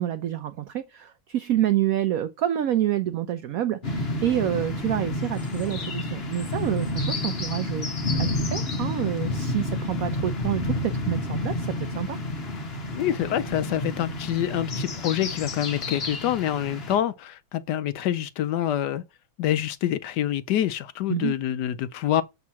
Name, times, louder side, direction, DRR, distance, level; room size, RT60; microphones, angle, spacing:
voice 1, 0.0-7.9 8.2-12.2 21.1-21.3, right 12 dB, 90° right, 0.7 m, -28 dB
sound 1, 3.8-17.0, left 1 dB, 35° left, 1.4 m, -30 dB
voice 2, 12.9-19.0 19.4-22.2, left 11 dB, 75° left, 1.0 m, -26 dB
7.4 x 3.7 x 5.6 m
omnidirectional pair, 2.1 m